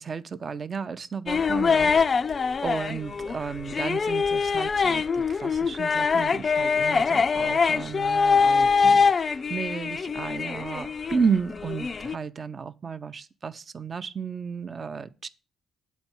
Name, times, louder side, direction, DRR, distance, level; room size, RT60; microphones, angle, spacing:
voice 1, 0.0-1.9 2.3-15.3, right 5 dB, 40° right, 0.6 m, -33 dB
sound 1, 1.3-11.2 11.5-12.1, left 5 dB, 40° left, 0.4 m, -23 dB
8.1 x 4.3 x 7.1 m
cardioid pair, 90°, 0 cm